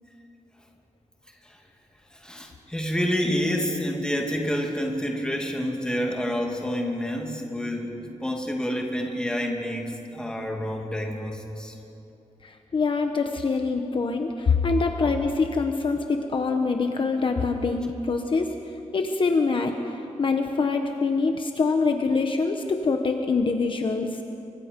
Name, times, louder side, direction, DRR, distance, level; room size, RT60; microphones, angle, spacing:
voice 1, 2.1-11.7, equal, 5° left, 1 dB, 2.5 m, -28 dB
voice 2, 12.4-18.5 18.9-24.2, left 4 dB, 45° left, 5 dB, 1.1 m, -24 dB
28.5 x 24.5 x 5.3 m, 2.8 s
wide cardioid pair, 170°, 12 cm